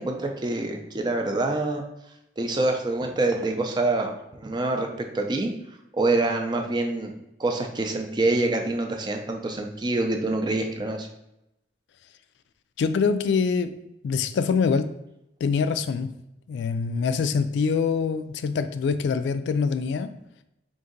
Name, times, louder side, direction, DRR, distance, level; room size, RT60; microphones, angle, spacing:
voice 1, 0.0-1.8 2.4-4.9 5.1-5.5 5.9-7.1 7.4-11.1, right 2 dB, 25° right, 0.4 m, -26 dB
voice 2, 12.8-13.8 14.0-14.9 15.4-16.1 16.5-20.1, left 5 dB, 85° left, 0.3 m, -24 dB
3.9 x 2.6 x 3.8 m
head